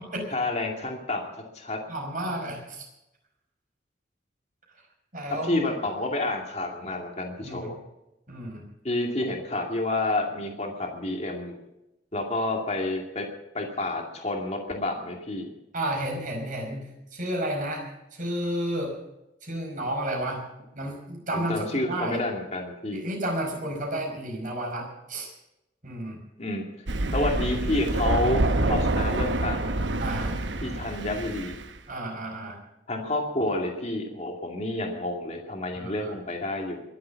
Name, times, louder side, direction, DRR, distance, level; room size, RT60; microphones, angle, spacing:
voice 1, 0.3-1.3 1.5-1.8 5.4-7.7 8.8-11.6 12.1-13.3 13.5-15.5 21.3-23.0 26.4-26.7 27.1-29.9 30.6-31.5 32.9-36.8, left 2 dB, 35° left, 1 dB, 2.4 m, -29 dB
voice 2, 1.9-2.9 5.1-5.6 7.4-7.7 8.3-8.6 15.7-17.9 18.1-19.0 19.4-20.4 20.7-22.2 22.9-25.3 25.8-26.2 30.0-30.4 31.9-32.6 35.8-36.1, right 1 dB, 45° right, 1 dB, 5.1 m, -31 dB
Thunder, 26.9-31.7, right 2 dB, 75° right, 1.0 m, -27 dB
22.5 x 7.7 x 7.1 m, 0.92 s
head